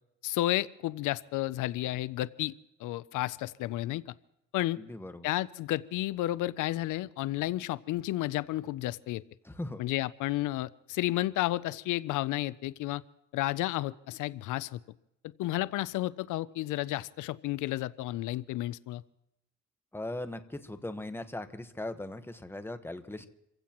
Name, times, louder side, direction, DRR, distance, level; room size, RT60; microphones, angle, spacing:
voice 1, 0.2-2.5 2.8-4.1 4.5-4.8 5.2-9.2 9.8-13.0 13.3-14.8 15.4-19.0, left 16 dB, 85° left, 18 dB, 0.5 m, -32 dB
voice 2, 4.8-5.3 9.4-9.8 19.9-23.3, left 1 dB, 10° left, 9 dB, 1.2 m, -39 dB
28.0 x 16.0 x 3.0 m, 0.84 s
cardioid pair, 90°, 30 cm